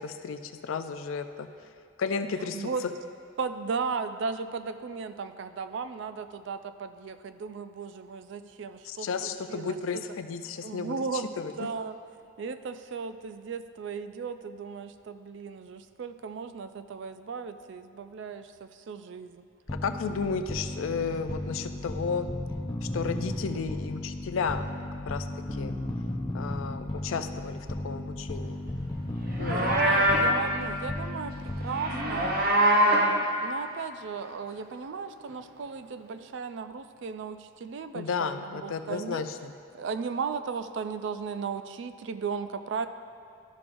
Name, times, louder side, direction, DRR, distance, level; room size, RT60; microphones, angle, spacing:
voice 1, 0.0-1.5 2.0-2.7 8.8-11.7 19.8-22.3 22.8-24.7 25.1-25.7 26.3-28.6 29.4-29.7 37.9-39.5, left 5 dB, 80° left, 9 dB, 0.4 m, -33 dB
voice 2, 2.5-2.9 3.4-10.0 10.6-11.3 11.6-11.9 12.4-19.4 29.6-32.4 32.7-39.2 39.7-42.9, right 5 dB, 60° right, 10 dB, 0.3 m, -36 dB
sound 1, 19.7-32.6, left 1 dB, 20° left, 0.4 m, -35 dB
Livestock farm animals working animals, 29.2-30.4 31.7-33.2, equal, 45° right, 0.8 m, -23 dB
12.0 x 6.1 x 2.6 m, 2.4 s
head